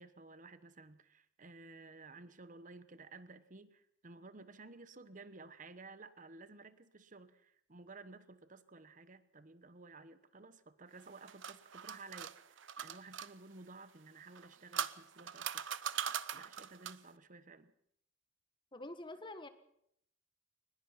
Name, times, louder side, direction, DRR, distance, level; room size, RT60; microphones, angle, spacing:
voice 1, 0.0-15.6 16.3-17.7, right 3 dB, 40° right, 13 dB, 1.1 m, -54 dB
sound 1, 11.0-13.3 14.3-17.1, right 8 dB, 75° right, 0.8 m, -41 dB
voice 2, 18.7-19.5, left 1 dB, 25° left, 10 dB, 1.4 m, -46 dB
22.0 x 20.5 x 5.8 m, 0.73 s
head